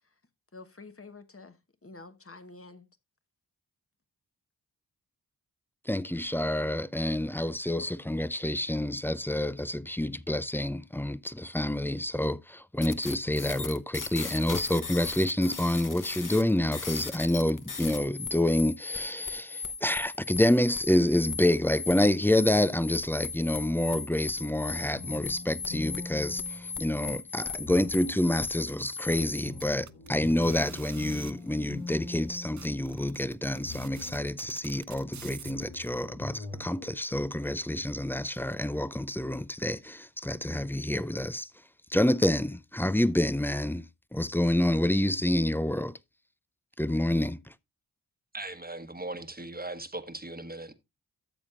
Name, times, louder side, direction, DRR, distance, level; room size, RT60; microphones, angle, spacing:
voice 1, 0.5-2.9, left 3 dB, 35° left, 1.3 m, -48 dB
voice 2, 5.9-41.5 41.9-43.9 44.1-46.0 46.8-47.4, left 1 dB, 5° left, 0.5 m, -28 dB
sound 1, 12.8-29.7, left 5 dB, 50° left, 1.1 m, -38 dB
sound 2, 25.0-27.2 27.7-28.5 29.2-33.3 33.7-34.5 35.2-37.0, left 3 dB, 65° left, 1.8 m, -44 dB
sound 3, 28.5-31.3 32.0-32.1 32.3-35.9, right 7 dB, 45° right, 0.6 m, -48 dB
voice 3, 48.3-50.7, right 2 dB, 20° right, 1.3 m, -39 dB
13.0 x 7.2 x 2.5 m
cardioid pair, 45°, 41 cm